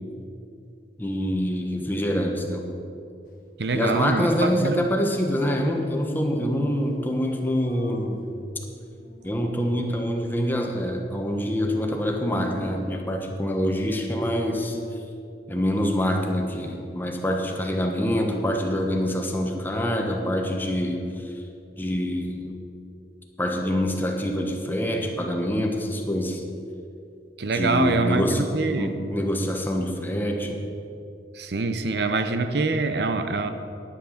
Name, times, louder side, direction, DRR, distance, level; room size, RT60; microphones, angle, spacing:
voice 1, 1.0-2.6 3.7-8.3 9.2-14.8 15.5-21.3 21.8-22.6 23.4-26.4 27.5-28.5 28.8-30.6, equal, 10° left, 2 dB, 1.2 m, -25 dB
Dog, 3.3-3.5 3.8-3.9 4.2-4.8 5.5-5.7 6.0-6.1 6.3-6.4 6.6-9.5, equal, 55° left, 1.2 m, -42 dB
voice 2, 3.6-4.9 27.4-28.9 31.3-33.5, right 3 dB, 70° right, 9 dB, 0.7 m, -25 dB
10.0 x 9.6 x 6.5 m, 2.6 s
head